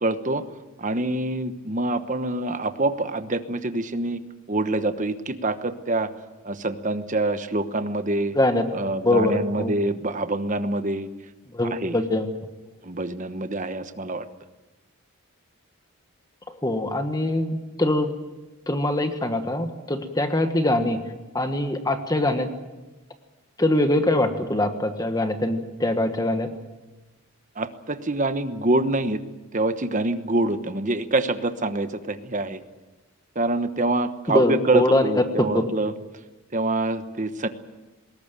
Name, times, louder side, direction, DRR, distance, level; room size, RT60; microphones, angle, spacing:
voice 1, 0.0-0.4 0.8-4.2 4.5-6.1 6.4-8.4 8.7-11.1 11.8-12.0 12.8-14.3 27.6-29.2 29.5-32.6 33.3-35.9 36.5-37.5, right 2 dB, 35° right, 10 dB, 1.1 m, -25 dB
voice 2, 8.3-9.7 11.5-12.3 16.6-18.1 18.7-22.5 23.6-26.5 34.3-35.6, left 1 dB, 15° left, 7 dB, 1.4 m, -23 dB
20.5 x 18.0 x 9.0 m, 1.1 s
head